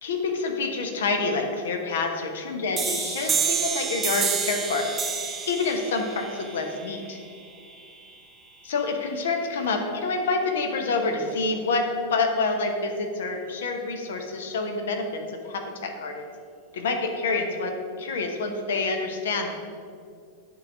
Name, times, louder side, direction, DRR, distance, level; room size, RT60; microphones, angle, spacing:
voice 1, 0.0-4.9 5.5-7.2 8.6-16.3 16.7-19.5, left 3 dB, 60° left, 4 dB, 0.9 m, -27 dB
sound 1, 2.8-8.2, right 6 dB, 20° right, 0.5 m, -29 dB
8.6 x 3.9 x 5.8 m, 2.3 s
figure-of-eight pair, 90°, 0 cm